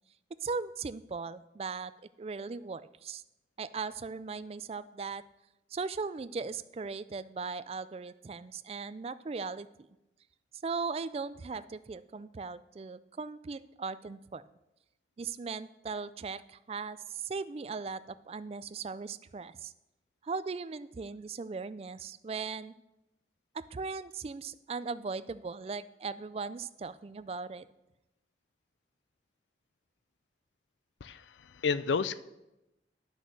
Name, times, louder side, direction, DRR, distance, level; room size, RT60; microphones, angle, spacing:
voice 1, 0.4-1.9 2.2-3.2 3.6-5.2 5.7-9.9 10.6-14.4 15.2-19.7 20.2-22.7 23.5-27.7, right 4 dB, 35° right, 15 dB, 0.3 m, -38 dB
voice 2, 31.0-32.2, left 5 dB, 85° left, 15 dB, 0.5 m, -31 dB
10.5 x 6.2 x 6.5 m, 0.93 s
head